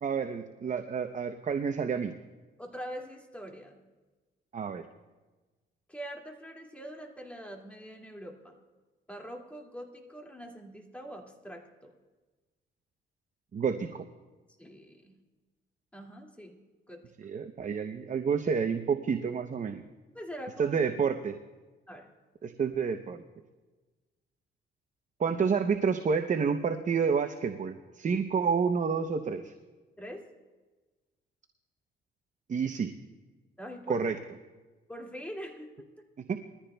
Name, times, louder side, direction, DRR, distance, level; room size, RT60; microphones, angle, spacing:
voice 1, 0.0-2.1 4.5-4.8 13.5-14.1 17.2-19.8 20.6-21.4 22.4-23.2 25.2-29.5 32.5-32.9 33.9-34.1 36.3-36.4, right 6 dB, 40° right, 7 dB, 0.7 m, -29 dB
voice 2, 2.6-3.8 5.9-8.6 9.1-11.9 14.6-15.2 15.9-16.6 16.9-17.0 20.1-20.9 21.9-22.1 30.0-30.3 33.6-34.0 34.9-35.9, equal, 5° left, 0 dB, 2.2 m, -43 dB
21.5 x 14.5 x 2.2 m, 1.3 s
cardioid pair, 90°, 20 cm